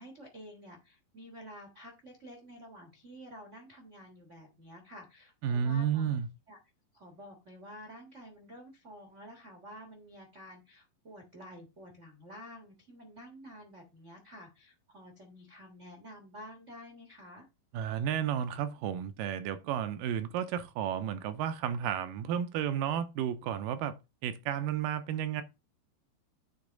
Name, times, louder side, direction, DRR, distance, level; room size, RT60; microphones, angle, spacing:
voice 1, 0.0-6.1 6.5-6.6 6.9-17.5, equal, 55° right, 0.8 m, -50 dB
voice 2, 5.4-6.3 17.7-23.9 24.2-25.4, right 9 dB, 85° right, 2.4 m, -32 dB
8.5 x 3.5 x 5.1 m
omnidirectional pair, 4.0 m